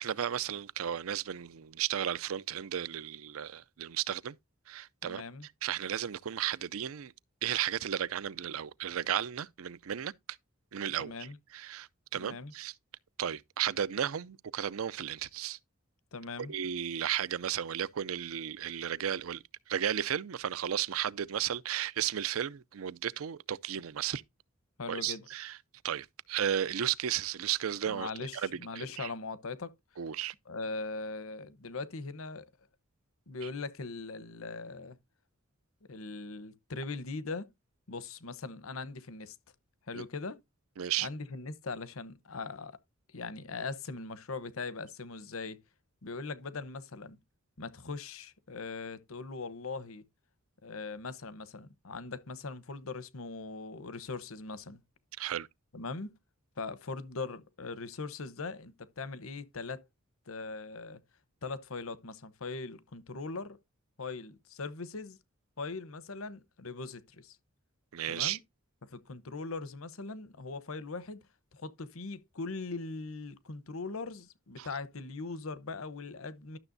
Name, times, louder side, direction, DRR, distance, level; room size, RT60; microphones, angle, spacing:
voice 1, 0.0-4.3 4.7-5.2 5.6-7.1 7.4-10.1 10.7-11.1 11.5-12.7 13.2-15.6 16.5-19.4 19.7-24.2 24.9-25.6 25.8-28.5 28.8-29.1 30.0-30.3 39.9-40.0 40.8-41.1 55.2-55.5 67.9-68.4 74.6-74.7, right 9 dB, 80° right, 0.5 m, -34 dB
voice 2, 5.0-5.5 11.0-11.4 12.1-12.5 16.1-16.5 24.8-25.3 27.9-29.7 30.5-32.5 33.3-35.0 35.9-37.5 37.9-39.4 39.9-40.4 41.0-42.8 43.1-45.6 46.0-47.2 47.6-50.0 50.6-54.8 55.7-56.2 56.6-59.9 60.3-61.0 61.4-63.6 64.0-65.2 65.6-67.4 68.1-68.4 68.8-71.2 71.5-76.6, left 3 dB, 80° left, 1.0 m, -40 dB
12.0 x 6.9 x 2.6 m
head